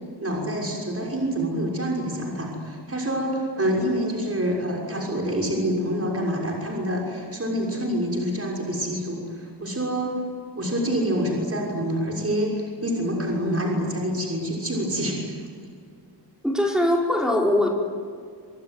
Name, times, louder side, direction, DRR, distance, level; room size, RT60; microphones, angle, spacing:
voice 1, 0.2-10.2 10.6-15.4, equal, 35° right, -2 dB, 6.3 m, -26 dB
voice 2, 16.4-17.7, left 1 dB, ahead, -2 dB, 4.4 m, -21 dB
25.5 x 24.0 x 9.6 m, 2.1 s
wide cardioid pair, 95°, 42 cm